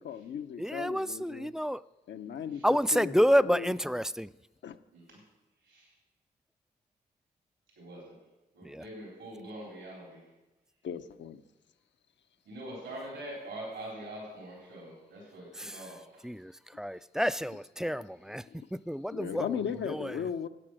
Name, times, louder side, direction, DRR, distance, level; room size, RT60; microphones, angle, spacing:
voice 1, 0.0-1.5 2.1-3.8 4.6-4.8 10.8-11.4 17.5-17.6 17.9-18.0 18.5-18.6 19.1-20.5, left 8 dB, 80° left, 0.7 m, -37 dB
voice 2, 0.6-1.8 2.6-4.3 8.6-8.8 15.6-15.7 16.2-16.5 16.8-18.4 18.7-19.5 19.9-20.1, equal, 5° right, 0.3 m, -29 dB
voice 3, 7.8-8.2 8.5-10.2 12.5-16.2, right 1 dB, 85° right, 4.0 m, -44 dB
12.0 x 8.8 x 6.3 m
supercardioid pair, 45°, 19 cm